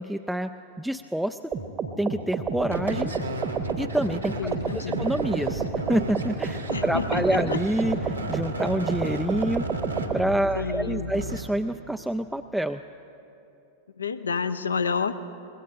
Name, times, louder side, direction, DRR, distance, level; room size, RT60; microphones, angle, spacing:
voice 1, 0.0-1.4 2.0-3.1 3.8-4.4 4.7-9.7 10.1-12.8, right 1 dB, ahead, 7 dB, 0.3 m, -27 dB
sound 1, 1.5-10.2, right 5 dB, 25° right, 0.9 m, -30 dB
sound 2, 2.7-11.4, right 2 dB, 80° right, 1.1 m, -34 dB
voice 2, 4.4-5.1 6.7-7.6 10.5-11.1 14.0-15.2, left 5 dB, 75° left, 12 dB, 0.6 m, -29 dB
25.0 x 21.0 x 2.5 m, 2.9 s
figure-of-eight pair, 90°, 0 cm